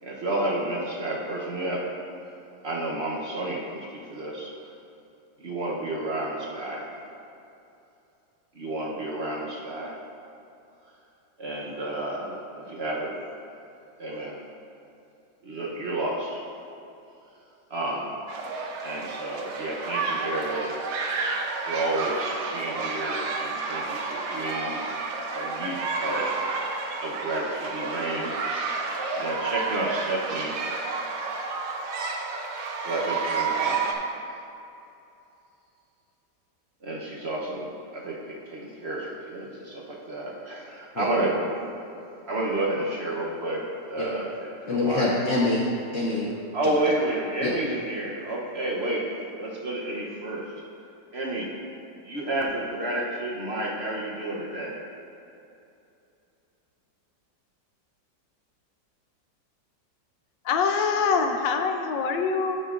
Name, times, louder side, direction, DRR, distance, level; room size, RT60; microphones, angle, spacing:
voice 1, 0.0-1.9 2.6-4.5 5.4-6.9 8.5-10.0 11.4-13.1 14.0-14.4 15.4-16.4 17.7-18.2 18.8-20.7 21.6-24.9 25.3-26.3 27.0-28.3 28.6-28.7 29.1-30.6 32.8-34.1 36.8-41.4 42.3-45.2 46.5-49.1 49.4-50.5 51.1-51.5 52.0-54.8, right 1 dB, 50° right, -3 dB, 0.8 m, -31 dB
sound 1, 18.3-33.9, right 4 dB, 65° right, 1.3 m, -30 dB
voice 2, 44.7-46.3 46.6-46.7 47.4-47.5, left 2 dB, 60° left, -4 dB, 0.8 m, -25 dB
voice 3, 60.4-62.6, left 5 dB, 80° left, 6 dB, 1.3 m, -24 dB
12.0 x 6.5 x 2.5 m, 2.7 s
omnidirectional pair, 2.0 m